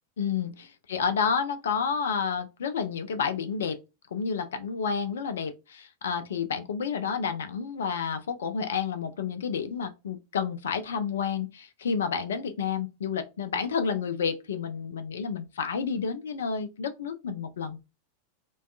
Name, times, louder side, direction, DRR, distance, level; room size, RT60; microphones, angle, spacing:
voice 1, 0.2-3.8 4.1-17.8, left 6 dB, 65° left, 0.3 m, -30 dB
2.5 x 2.2 x 2.2 m
figure-of-eight pair, 90°, 0 cm